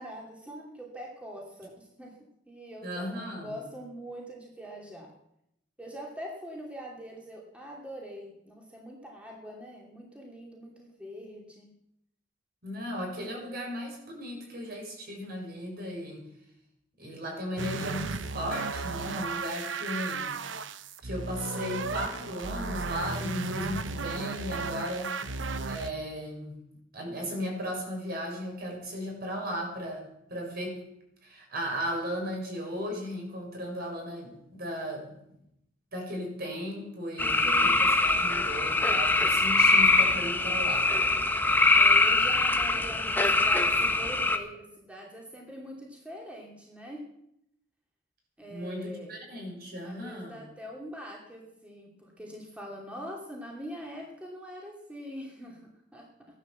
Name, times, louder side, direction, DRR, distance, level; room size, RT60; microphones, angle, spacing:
voice 1, 0.0-2.1 2.5-5.1 5.8-11.7 37.2-37.9 41.3-47.0 48.4-49.1 49.8-56.1, equal, 5° right, -2 dB, 2.7 m, -43 dB
voice 2, 2.8-3.5 12.6-16.2 17.0-20.3 21.0-25.1 25.6-26.6 26.9-30.8 31.2-35.1 35.9-40.9 48.5-50.4, equal, 55° right, 0 dB, 6.6 m, -36 dB
sound 1, 17.6-25.9, right 4 dB, 80° right, 0.9 m, -34 dB
sound 2, 37.2-44.4, left 3 dB, 10° left, 1.2 m, -23 dB
16.0 x 11.5 x 7.3 m, 0.78 s
head